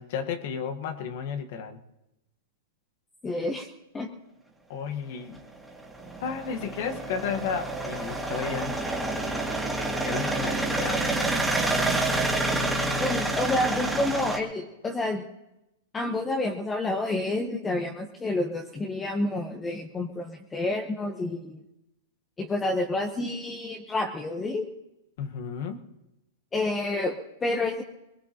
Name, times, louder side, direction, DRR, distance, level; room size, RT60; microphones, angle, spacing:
voice 1, 0.0-1.8 4.7-5.4 6.2-8.8 10.0-11.0 25.2-25.8, left 7 dB, 60° left, 6 dB, 1.3 m, -33 dB
voice 2, 3.2-3.7 3.9-4.1 13.0-15.2 15.9-21.6 22.4-24.7 26.5-27.8, left 2 dB, 15° left, 3 dB, 1.0 m, -29 dB
sound 1, 5.3-14.4, right 2 dB, 5° right, 2.2 m, -28 dB
21.5 x 20.5 x 2.9 m, 0.94 s
hypercardioid pair, 125°, 0 cm